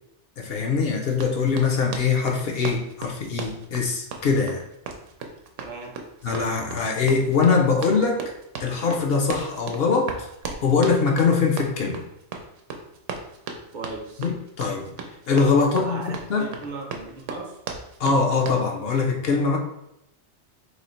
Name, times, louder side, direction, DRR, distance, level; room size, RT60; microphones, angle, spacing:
voice 1, 0.4-4.6 6.2-8.2 8.6-10.3 10.6-12.0 14.2-14.9 15.3-16.0 16.3-16.5 18.0-19.6, left 5 dB, 60° left, 1 dB, 0.8 m, -22 dB
Run, 1.1-18.7, right 4 dB, 90° right, 1.0 m, -37 dB
voice 2, 5.6-6.0 13.7-14.3 15.7-17.6, right 3 dB, 50° right, 1 dB, 0.8 m, -37 dB
3.1 x 2.8 x 4.1 m, 0.82 s
omnidirectional pair, 1.2 m